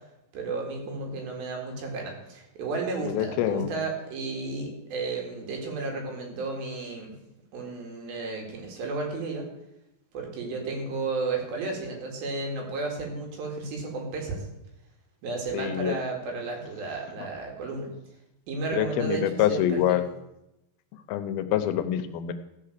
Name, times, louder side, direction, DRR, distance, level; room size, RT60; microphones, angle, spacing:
voice 1, 0.3-7.1 7.5-9.5 10.1-14.5 15.2-17.9 18.5-20.0, right 3 dB, 70° right, 1 dB, 3.9 m, -33 dB
voice 2, 3.0-3.7 15.5-15.9 18.7-20.1 21.1-22.3, left 11 dB, 80° left, 10 dB, 2.5 m, -26 dB
15.0 x 5.8 x 6.5 m, 0.89 s
omnidirectional pair, 4.4 m